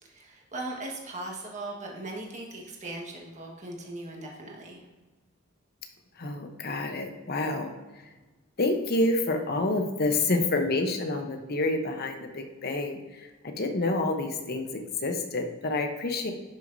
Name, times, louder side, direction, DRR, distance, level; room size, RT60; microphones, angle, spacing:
voice 1, 0.0-4.8, right 2 dB, 35° right, -1 dB, 1.6 m, -39 dB
voice 2, 6.2-7.7 8.6-16.3, left 2 dB, 50° left, 5 dB, 0.9 m, -28 dB
11.0 x 6.2 x 2.7 m, 1.2 s
head